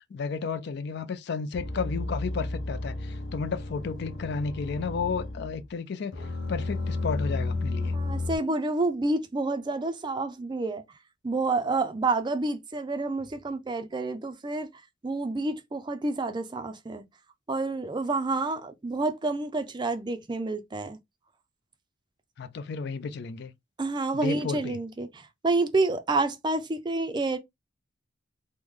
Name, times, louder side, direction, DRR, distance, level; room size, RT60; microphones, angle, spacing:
voice 1, 0.1-6.1 6.5-7.9 22.4-23.5 24.1-24.8, left 5 dB, 60° left, 0.4 m, -32 dB
sound 1, 1.5-5.7 6.1-8.4, left 2 dB, 80° left, 0.8 m, -32 dB
voice 2, 7.9-10.8 11.2-14.7 15.0-17.0 17.5-21.0 23.8-27.4, right 3 dB, 25° right, 0.4 m, -29 dB
3.1 x 2.1 x 3.5 m
head